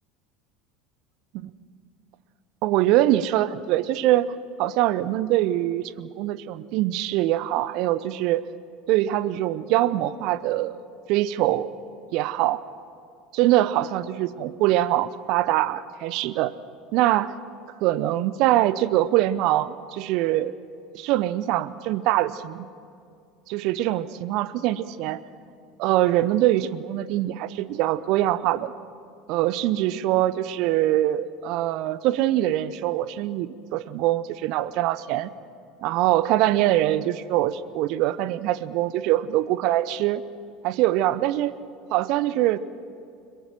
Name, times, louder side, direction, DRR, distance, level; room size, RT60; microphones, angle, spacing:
voice 1, 2.6-4.3 4.6-8.4 8.9-10.8 11.1-11.7 12.1-12.6 13.3-16.5 16.9-17.3 17.8-20.5 20.9-22.7 23.5-25.2 25.8-28.7 29.3-35.3 35.8-40.2 40.6-41.5 41.9-42.6, right 14 dB, 55° right, 17 dB, 0.7 m, -23 dB
22.0 x 21.0 x 7.6 m, 2.4 s
figure-of-eight pair, 70°, 0 cm